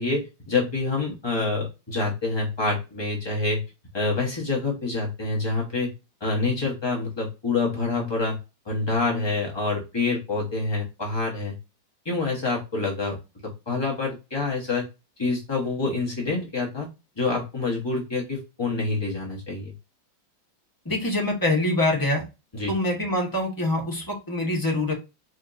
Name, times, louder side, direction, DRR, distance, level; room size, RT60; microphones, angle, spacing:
voice 1, 0.0-3.6 3.9-5.9 6.2-8.4 8.7-11.5 12.0-13.2 13.7-14.9 15.2-16.9 17.2-19.7 22.5-22.7, left 3 dB, 45° left, -3 dB, 0.3 m, -27 dB
voice 2, 20.8-22.2 22.7-24.9, left 1 dB, 15° left, -1 dB, 0.8 m, -24 dB
5.0 x 2.9 x 2.5 m, 0.27 s
omnidirectional pair, 2.2 m